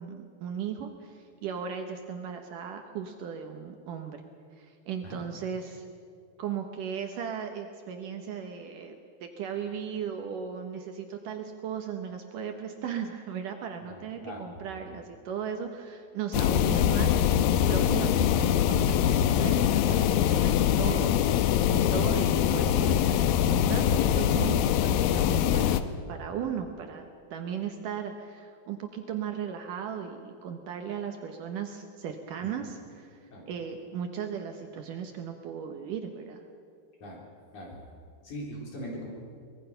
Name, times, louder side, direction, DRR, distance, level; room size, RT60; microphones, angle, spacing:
voice 1, 0.0-4.2 4.5-5.9 6.4-25.8 26.1-36.4, right 7 dB, 70° right, 5 dB, 2.4 m, -37 dB
voice 2, 13.9-14.4 33.3-33.5 37.0-37.2 37.5-37.8 38.2-39.1, equal, 50° left, -2 dB, 5.1 m, -40 dB
sound 1, 16.3-25.8, left 10 dB, 80° left, 2.3 m, -23 dB
24.0 x 20.5 x 5.7 m, 2.3 s
omnidirectional pair, 4.5 m